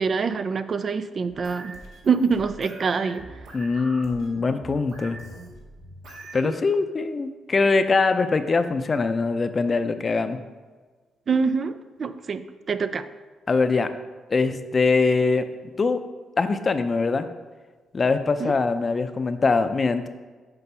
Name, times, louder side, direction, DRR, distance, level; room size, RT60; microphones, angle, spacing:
voice 1, 0.0-1.7 2.1-3.3 6.4-6.5 11.3-13.1 18.4-18.6, right 5 dB, 50° right, 11 dB, 0.4 m, -25 dB
sound 1, 1.3-6.5, right 2 dB, 80° right, 1.7 m, -42 dB
voice 2, 3.5-5.2 6.3-10.4 13.5-13.9 14.3-15.5 15.8-16.0 16.4-17.3 17.9-20.1, left 4 dB, 40° left, 10 dB, 0.5 m, -22 dB
6.8 x 4.0 x 5.5 m, 1.4 s
cardioid pair, 70°, 0 cm